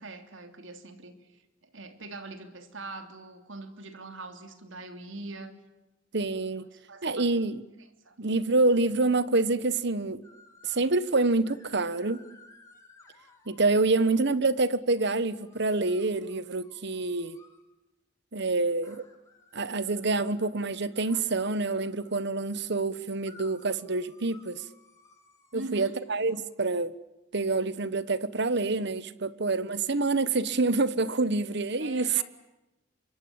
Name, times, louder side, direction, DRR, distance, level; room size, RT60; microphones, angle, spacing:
voice 1, 0.0-5.6 6.7-7.3 8.0-8.2 25.5-26.0 31.8-32.2, right 2 dB, 85° right, 3.2 m, -43 dB
voice 2, 6.1-6.7 7.0-7.6 8.2-10.2 10.6-12.2 13.5-17.4 18.3-19.1 19.5-24.6 25.5-26.9 27.3-32.1, right 3 dB, 60° right, 1.3 m, -27 dB
sound 1, 10.2-10.9 11.4-14.2 15.0-17.6 18.8-22.3 23.2-26.4, left 3 dB, 15° left, 4.3 m, -58 dB
26.0 x 23.5 x 8.8 m
head